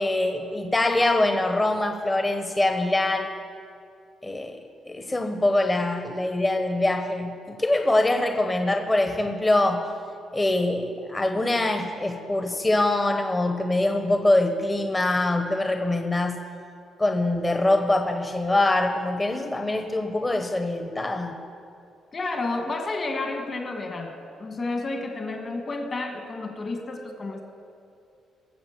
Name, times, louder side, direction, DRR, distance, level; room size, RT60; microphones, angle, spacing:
voice 1, 0.0-3.3 4.2-4.6 4.9-9.9 10.3-16.4 17.0-21.4, left 2 dB, 20° left, 5 dB, 1.0 m, -24 dB
voice 2, 22.1-24.1 24.4-27.4, left 3 dB, 40° left, 3 dB, 1.8 m, -31 dB
18.0 x 7.4 x 6.8 m, 2.4 s
cardioid pair, 90°, 0 cm